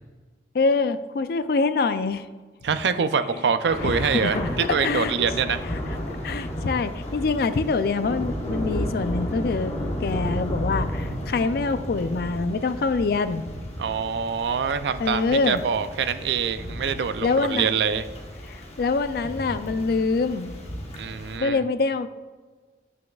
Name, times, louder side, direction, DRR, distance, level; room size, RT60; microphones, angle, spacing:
voice 1, 0.5-2.3 3.8-4.5 4.8-5.2 5.7-5.8 6.1-9.7 10.0-13.4 15.0-15.6 17.2-17.7 18.5-20.6 21.4-22.1, left 4 dB, 60° left, 12 dB, 0.4 m, -25 dB
voice 2, 2.6-5.6 13.8-18.1 21.0-21.6, right 6 dB, 75° right, 11 dB, 0.4 m, -25 dB
Thunder / Rain, 3.6-21.4, equal, 35° left, 1.1 m, -33 dB
9.3 x 6.2 x 2.3 m, 1.4 s
head